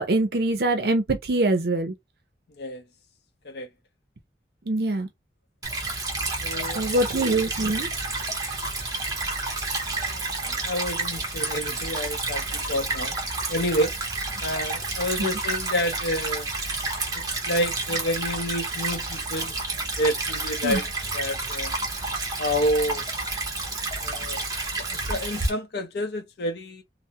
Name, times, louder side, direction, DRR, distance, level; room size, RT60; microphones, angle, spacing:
voice 1, 0.0-1.9 4.7-5.1 6.7-7.9 15.2-15.3 20.6-20.8, right 2 dB, 60° right, 0.5 m, -24 dB
Stream / Trickle dribble, 5.6-25.5, right 3 dB, 20° right, 0.8 m, -30 dB
voice 2, 6.4-6.9 9.9-13.2 13.5-13.9 14.4-16.5 17.1-19.5 20.0-20.9 21.1-21.7 22.4-23.1 24.0-24.4 24.9-26.8, equal, 65° left, 0.5 m, -29 dB
3.3 x 2.0 x 2.7 m
head